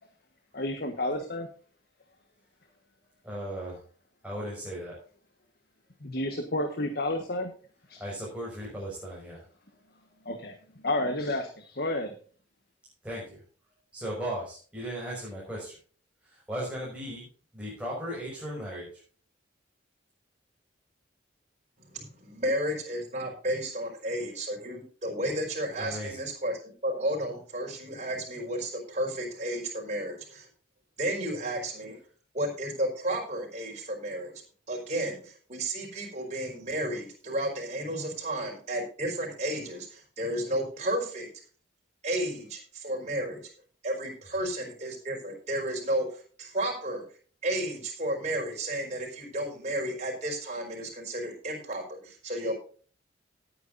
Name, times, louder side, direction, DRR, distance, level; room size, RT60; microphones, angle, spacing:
voice 1, 0.5-1.5 6.0-7.5 7.9-8.0 10.2-10.5 10.8-12.1, left 1 dB, 55° left, 6 dB, 1.4 m, -30 dB
voice 2, 3.2-3.8 4.2-4.9 8.0-9.4 13.0-13.4 13.9-15.7 16.3-17.3 17.5-18.9 25.8-26.2, equal, 5° right, -6 dB, 6.0 m, -36 dB
voice 3, 21.8-30.5 31.0-32.0 32.3-34.4 34.7-41.3 42.0-43.5 43.8-47.0 47.4-52.6, right 1 dB, 40° right, 0 dB, 5.0 m, -32 dB
18.5 x 9.3 x 2.7 m, 0.41 s
head